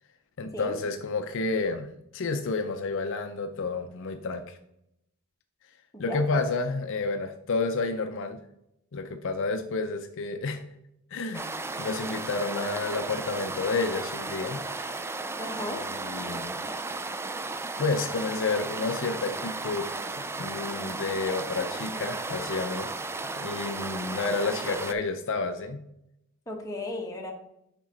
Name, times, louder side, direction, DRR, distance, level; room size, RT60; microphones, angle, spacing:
voice 1, 0.4-4.6 6.0-8.4 8.9-10.6 11.1-11.5 11.8-14.6 16.0-16.5 17.8-20.0 20.4-22.9 23.3-25.8, left 3 dB, 60° left, 7 dB, 0.5 m, -30 dB
voice 2, 5.9-6.4 15.4-15.9 26.5-27.3, left 2 dB, 15° left, 0 dB, 1.3 m, -35 dB
sound 1, 11.3-24.9, right 3 dB, 10° right, 0.3 m, -35 dB
7.3 x 5.2 x 3.8 m, 0.80 s
head